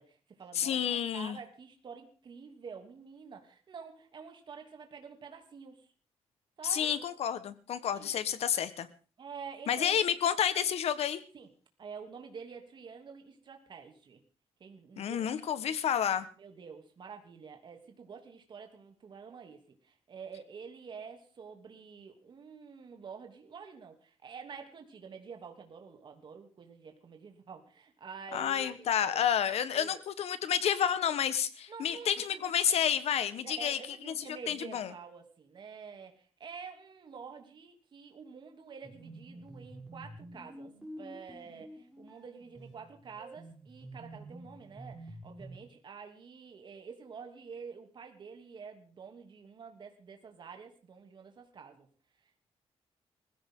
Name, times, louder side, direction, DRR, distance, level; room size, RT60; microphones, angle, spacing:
voice 1, 0.0-5.9 6.6-7.0 7.9-8.1 9.2-10.0 10.5-10.7 11.3-11.5 11.8-14.2 14.6-15.4 16.4-29.3 29.7-30.0 31.7-32.5 33.4-40.7 41.0-51.9, right 6 dB, 45° right, 4 dB, 2.9 m, -48 dB
voice 2, 0.5-1.4 6.6-8.9 9.7-11.2 15.0-16.3 28.3-33.8 34.1-34.9, left 9 dB, 80° left, 13 dB, 1.4 m, -30 dB
sound 1, 38.8-45.7, right 1 dB, 5° right, 7.6 m, -49 dB
20.5 x 15.5 x 3.9 m, 0.38 s
wide cardioid pair, 150°, 11 cm